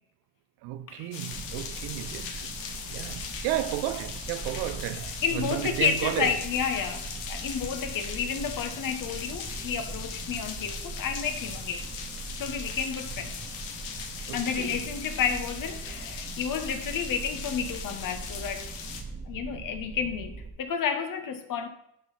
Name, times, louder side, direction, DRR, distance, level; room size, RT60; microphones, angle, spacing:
voice 1, 0.6-2.5 2.9-6.4 14.3-14.8, right 14 dB, 75° right, 0.5 m, -33 dB
sound 1, 1.1-19.0, left 6 dB, 85° left, 0.9 m, -39 dB
sound 2, 1.3-20.5, right 4 dB, 20° right, 1.4 m, -41 dB
voice 2, 4.9-11.8 12.4-13.4 14.3-18.7 19.3-21.7, left 7 dB, 55° left, 1.1 m, -31 dB
11.5 x 4.1 x 4.0 m
hypercardioid pair, 55°, 39 cm